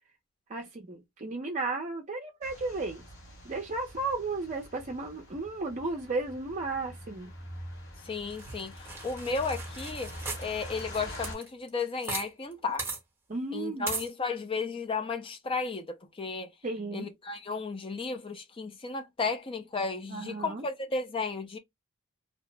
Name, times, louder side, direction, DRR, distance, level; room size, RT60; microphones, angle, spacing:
voice 1, 0.5-3.0 3.4-7.3 13.3-13.9 16.6-17.1 20.1-20.6, right 3 dB, 35° right, 0.5 m, -34 dB
sound 1, 2.4-11.4, equal, 55° left, 1.2 m, -45 dB
voice 2, 8.0-10.1 10.4-12.9 13.5-16.5 16.9-21.6, left 4 dB, 25° left, 0.4 m, -34 dB
sound 2, 8.3-12.3 12.5-12.6 12.8-13.0 13.9-14.1, right 3 dB, 10° right, 0.9 m, -38 dB
2.7 x 2.0 x 3.2 m
head